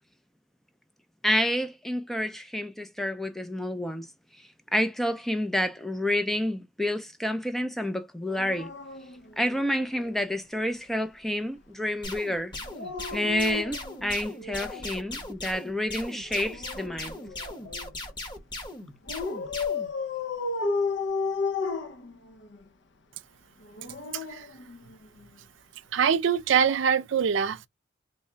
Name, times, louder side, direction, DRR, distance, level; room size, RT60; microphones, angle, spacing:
voice 1, 1.2-4.1 4.7-8.7 9.4-12.5 13.1-17.2, left 1 dB, ahead, 0.4 m, -29 dB
Dog, 8.3-10.1 12.6-15.0 16.3-17.9 19.1-22.6 23.6-25.3 26.5-26.7, left 4 dB, 60° left, 0.5 m, -34 dB
sound 1, 12.0-19.9, left 2 dB, 25° left, 0.9 m, -38 dB
voice 2, 24.1-24.5 25.9-27.7, right 7 dB, 70° right, 0.4 m, -24 dB
3.1 x 2.2 x 3.8 m
head